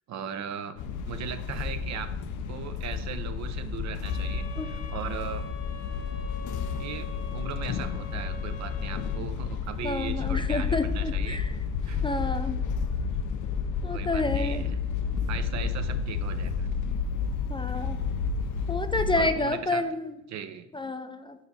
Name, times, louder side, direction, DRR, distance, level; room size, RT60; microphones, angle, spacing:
voice 1, 0.1-0.8 1.0-2.1 2.5-5.5 6.8-11.4 11.9-12.2 13.9-14.9 15.3-16.7 19.2-19.9 20.3-20.7, right 8 dB, 65° right, 10 dB, 0.6 m, -38 dB
sound 1, 0.8-19.3, left 6 dB, 85° left, 0.5 m, -31 dB
sound 2, 4.0-9.2, left 4 dB, 55° left, 0.8 m, -45 dB
voice 2, 9.8-11.5 12.0-12.6 13.8-14.6 17.5-18.0 18.7-20.2 20.7-21.4, left 2 dB, 15° left, 9 dB, 0.3 m, -29 dB
5.5 x 4.7 x 4.0 m, 0.91 s
cardioid pair, 90°, 30 cm